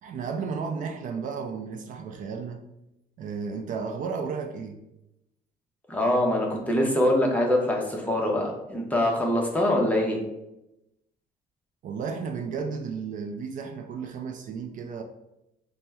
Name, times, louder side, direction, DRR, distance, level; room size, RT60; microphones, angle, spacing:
voice 1, 0.0-2.7 3.2-4.8 11.8-15.0, right 5 dB, 50° right, 4 dB, 0.4 m, -33 dB
voice 2, 5.9-10.2, left 1 dB, 10° left, -1 dB, 0.6 m, -24 dB
4.3 x 2.1 x 3.4 m, 0.90 s
cardioid pair, 150°, 17 cm